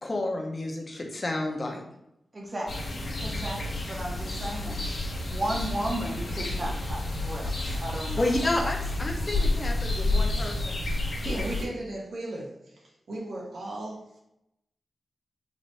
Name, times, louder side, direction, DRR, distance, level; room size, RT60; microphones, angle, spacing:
voice 1, 0.0-1.8 8.1-10.8, left 2 dB, 35° left, 1 dB, 0.7 m, -30 dB
voice 2, 2.3-2.7 3.2-4.8 5.3-8.3 8.6-8.7, right 1 dB, 35° right, -1 dB, 0.7 m, -34 dB
sound 1, 2.7-11.6, left 2 dB, 65° left, 0.9 m, -30 dB
voice 3, 11.2-12.8 13.1-14.2, right 1 dB, 80° right, -3 dB, 1.1 m, -36 dB
4.0 x 2.6 x 3.2 m, 0.82 s
wide cardioid pair, 85°, 0 cm